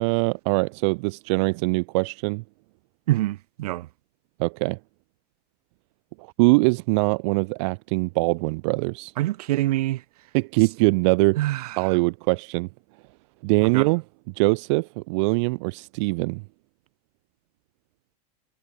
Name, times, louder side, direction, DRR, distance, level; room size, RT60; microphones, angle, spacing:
voice 1, 0.0-2.4 4.4-4.8 6.2-9.1 10.3-11.4 11.8-12.7 13.4-14.0 14.4-16.4, right 28 dB, 45° right, 1.1 m, -22 dB
voice 2, 3.1-3.9 9.2-10.0 11.4-12.0 13.6-13.9, right 16 dB, 65° right, 2.4 m, -26 dB
supercardioid pair, 165°, 21 cm